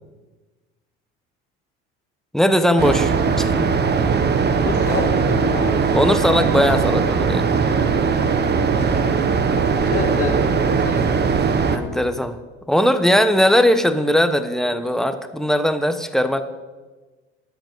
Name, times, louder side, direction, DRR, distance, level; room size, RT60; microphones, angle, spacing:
voice 1, 2.3-3.8 5.9-7.5 11.7-12.4 12.7-16.4, equal, ahead, 9 dB, 1.1 m, -19 dB
sound 1, 2.8-11.8, right 5 dB, 35° right, 1.3 m, -19 dB
voice 2, 4.5-6.1 9.5-11.2, left 4 dB, 50° left, 2 dB, 2.6 m, -28 dB
11.5 x 9.4 x 7.9 m, 1.3 s
supercardioid pair, 105°, 30 cm